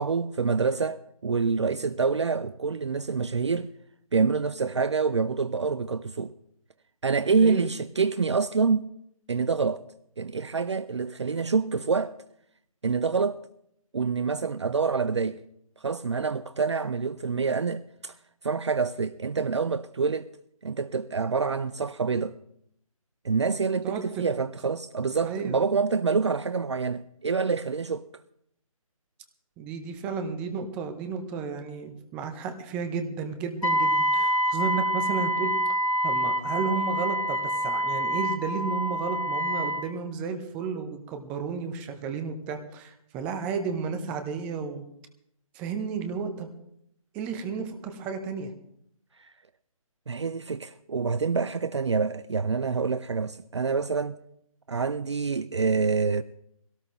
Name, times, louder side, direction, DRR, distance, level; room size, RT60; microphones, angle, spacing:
voice 1, 0.0-3.7 4.1-6.3 7.0-8.9 9.3-9.8 10.2-12.2 12.8-13.4 13.9-15.4 15.8-18.1 18.4-20.3 20.6-22.4 23.2-28.1 50.1-54.2 54.7-56.2, right 5 dB, 50° right, 0.5 m, -26 dB
voice 2, 23.8-24.2 25.2-25.6 29.6-35.5 36.0-44.9 45.5-46.5 47.1-48.5, right 5 dB, 5° right, 0.6 m, -32 dB
Wind instrument woodwind instrument, 33.6-39.9, equal, 70° left, 1.5 m, -26 dB
23.0 x 17.5 x 3.0 m
figure-of-eight pair, 150°, 18 cm